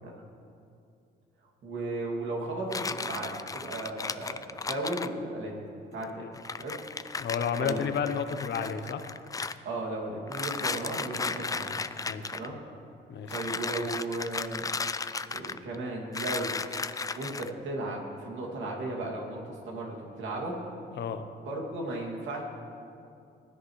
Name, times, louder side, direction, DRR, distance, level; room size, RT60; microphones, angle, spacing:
voice 1, 1.6-5.6 5.9-6.3 6.6-6.8 7.6-7.8 9.6-11.8 12.3-12.6 13.3-14.7 15.3-16.6 17.2-20.6 21.5-22.4, right 2 dB, 75° right, -1 dB, 2.5 m, -35 dB
sound 1, 2.7-5.1 6.0-6.1 6.3-9.5 10.3-12.5 13.3-15.7 16.1-17.5, left 4 dB, 15° left, 0.4 m, -35 dB
voice 2, 7.2-9.0 12.1-12.3 13.1-13.3 20.9-21.2, left 7 dB, 60° left, 8 dB, 0.9 m, -31 dB
19.5 x 10.5 x 3.2 m, 2.5 s
cardioid pair, 90°, 20 cm